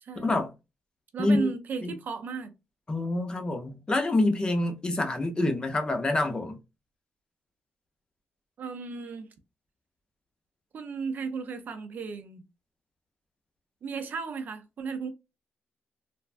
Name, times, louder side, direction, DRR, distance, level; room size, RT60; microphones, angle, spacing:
voice 1, 0.2-0.5 1.2-1.5 1.8-2.0 2.9-6.6, left 2 dB, 20° left, 0.5 m, -26 dB
voice 2, 1.1-2.5 8.6-9.3 10.7-12.4 13.8-15.1, right 5 dB, 50° right, 0.5 m, -35 dB
3.2 x 2.2 x 2.4 m
wide cardioid pair, 170°, 4 cm